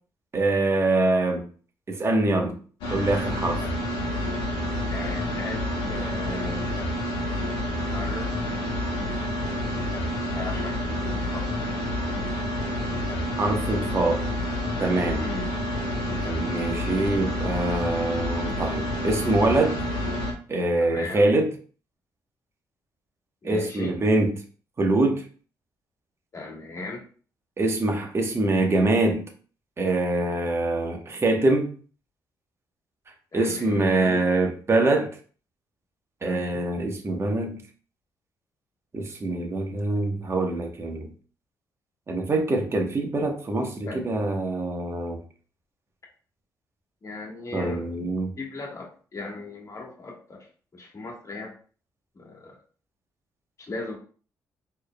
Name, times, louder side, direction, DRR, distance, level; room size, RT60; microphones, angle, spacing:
voice 1, 0.3-1.5 1.9-2.6 2.9-3.6 13.4-14.2 14.8-15.2 16.2-19.8 20.5-21.5 23.4-24.3 24.8-25.2 27.6-29.3 29.8-31.7 33.3-35.1 36.2-37.6 38.9-41.1 42.1-45.2 47.5-48.3, right 2 dB, 35° right, 1.0 m, -24 dB
sound 1, 2.8-20.3, left 1 dB, 85° left, 1.1 m, -28 dB
voice 2, 4.9-5.6 5.9-6.8 7.8-8.3 10.3-11.5 15.2-15.4 20.8-21.3 23.4-23.9 26.3-27.1 33.3-34.2 36.2-36.6 43.9-44.1 47.0-47.9 48.4-50.5 50.7-51.5 52.1-52.5 53.7-54.0, left 3 dB, 40° left, 1.5 m, -37 dB
4.3 x 3.3 x 2.2 m
cardioid pair, 75°, 8 cm